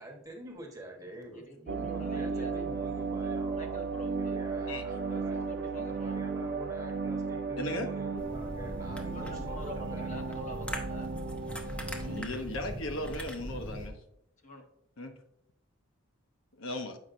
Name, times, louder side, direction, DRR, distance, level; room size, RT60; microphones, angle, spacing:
voice 1, 0.0-3.8 4.2-5.4 5.7-10.1, right 1 dB, 15° right, 1.1 m, -45 dB
voice 2, 1.3-2.6 3.2-4.4 4.9-6.2 9.0-11.1 14.4-14.6, equal, 35° left, 0.8 m, -47 dB
sound 1, 1.7-12.2, right 4 dB, 45° right, 0.4 m, -35 dB
voice 3, 7.6-7.9 12.0-14.0 15.0-15.1 16.6-17.0, left 1 dB, 70° left, 0.9 m, -36 dB
sound 2, 8.2-13.9, equal, 5° left, 0.7 m, -40 dB
7.8 x 5.5 x 2.5 m
head